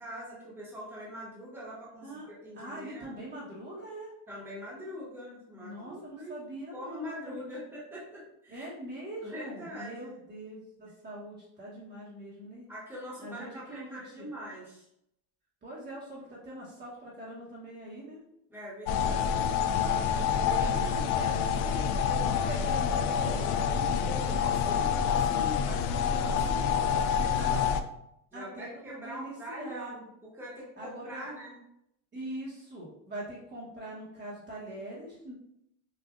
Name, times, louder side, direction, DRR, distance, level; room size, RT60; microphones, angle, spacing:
voice 1, 0.0-3.3 4.3-6.4 6.7-8.7 9.2-10.2 12.7-14.9 18.5-19.5 20.1-21.4 24.0-27.7 28.3-30.0 30.3-31.6, equal, 5° right, -7 dB, 1.2 m, -43 dB
voice 2, 2.5-4.1 5.6-7.7 8.5-12.7 13.2-14.2 15.6-18.2 20.0-24.2 26.5-27.0 27.4-27.5 28.3-29.9 30.8-31.3 32.1-35.3, right 1 dB, 25° right, -6 dB, 1.2 m, -42 dB
sound 1, 18.9-27.8, left 7 dB, 85° left, 0.5 m, -27 dB
6.3 x 2.5 x 2.5 m, 0.79 s
cardioid pair, 155°, 40 cm